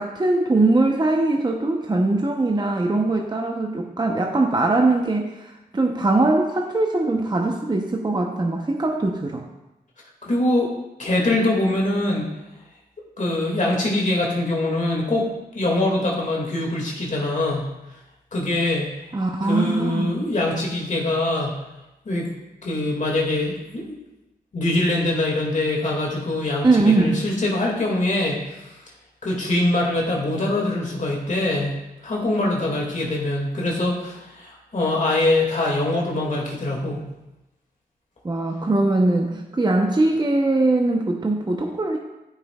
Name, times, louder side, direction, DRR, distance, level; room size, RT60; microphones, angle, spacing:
voice 1, 0.0-9.4 19.1-20.2 26.6-27.3 38.2-42.0, right 2 dB, 25° right, 2 dB, 0.8 m, -21 dB
voice 2, 10.2-10.7 11.0-12.2 13.2-15.3 15.5-17.7 18.3-18.9 19.4-21.5 22.1-22.3 22.6-24.0 24.5-28.7 29.2-37.0, left 2 dB, 50° left, -2 dB, 2.1 m, -23 dB
13.5 x 5.7 x 2.3 m, 0.97 s
cardioid pair, 65°, 17 cm